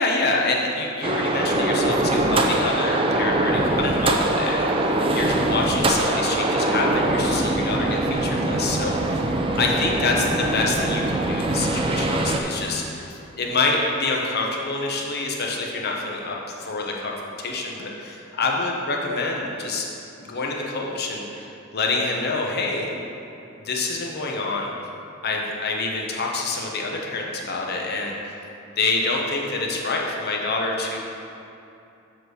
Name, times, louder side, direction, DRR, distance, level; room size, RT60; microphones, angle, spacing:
voice 1, 0.0-9.3 9.6-19.9 20.2-21.5 21.7-22.9 23.5-24.7 25.2-28.4 28.7-31.0, left 3 dB, 50° left, -1 dB, 1.0 m, -26 dB
sound 1, 1.0-12.4, right 2 dB, 25° right, 0.5 m, -22 dB
7.4 x 4.1 x 6.5 m, 2.7 s
head